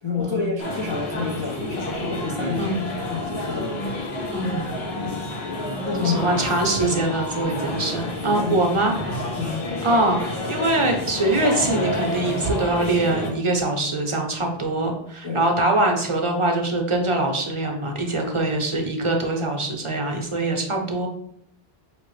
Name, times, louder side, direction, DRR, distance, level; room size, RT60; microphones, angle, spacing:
voice 1, 0.0-2.8 3.1-3.7 5.0-5.3 5.7-6.2 6.5-7.2 7.8-8.5 9.3-9.6 15.2-15.4, left 5 dB, 35° left, -3 dB, 0.5 m, -29 dB
sound 1, 0.6-13.3, left 1 dB, 75° left, 1.1 m, -29 dB
voice 2, 2.6-2.9 4.3-4.7 6.0-8.9 9.8-21.1, right 2 dB, 35° right, 2 dB, 0.7 m, -23 dB
5.7 x 2.9 x 3.1 m, 0.70 s
omnidirectional pair, 1.1 m